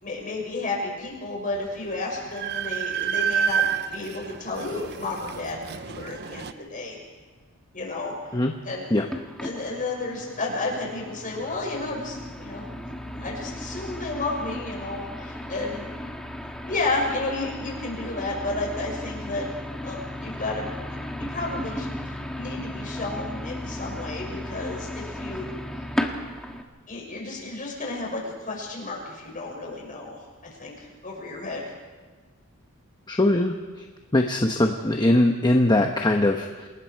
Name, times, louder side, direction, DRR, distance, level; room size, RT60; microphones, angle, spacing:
voice 1, 0.0-7.0 7.7-9.0 9.4-12.7 13.1-15.9 16.6-19.5 19.8-20.7 21.2-21.9 22.3-25.6 26.9-31.7, left 2 dB, 40° left, -1 dB, 6.5 m, -32 dB
Train, 1.6-1.7 2.0-6.5, right 7 dB, 50° right, 0.8 m, -29 dB
sound 1, 9.1-26.6, left 1 dB, 5° left, 1.6 m, -35 dB
voice 2, 33.1-33.5 34.1-36.7, left 1 dB, 20° left, 3 dB, 1.1 m, -21 dB
28.5 x 20.0 x 4.7 m, 1.3 s
head